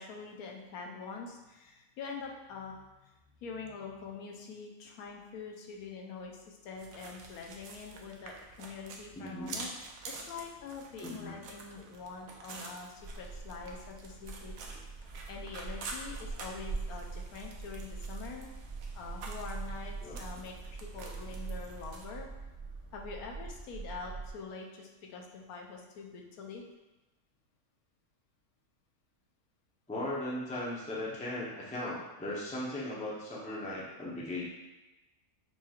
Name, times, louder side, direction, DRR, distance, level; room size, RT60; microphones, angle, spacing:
voice 1, 0.0-9.7 10.0-14.5 15.3-18.5 18.9-22.3 22.9-26.6, left 5 dB, 80° left, 0 dB, 1.1 m, -45 dB
sound 1, 6.7-22.1, right 3 dB, 70° right, 1.0 m, -48 dB
voice 2, 9.1-9.6 11.0-11.3 20.0-20.2 29.9-34.4, left 1 dB, 10° left, -5 dB, 0.3 m, -37 dB
sound 2, 13.0-24.3, right 4 dB, 50° right, 1.1 m, -43 dB
5.7 x 2.9 x 2.4 m, 1.1 s
omnidirectional pair, 1.6 m